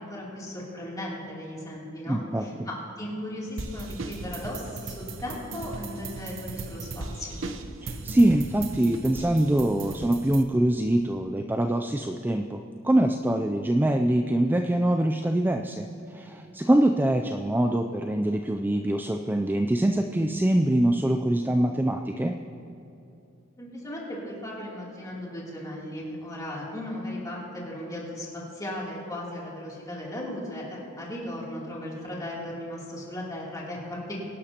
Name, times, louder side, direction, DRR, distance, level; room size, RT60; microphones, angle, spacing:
voice 1, 0.0-7.4 23.6-28.3 28.5-34.1, left 1 dB, 20° left, -5 dB, 3.0 m, -36 dB
voice 2, 2.1-2.5 7.8-22.3, right 1 dB, 10° right, 4 dB, 0.3 m, -24 dB
sound 1, 3.6-10.4, right 3 dB, 70° right, 0.9 m, -37 dB
24.0 x 11.5 x 2.9 m, 2.8 s
head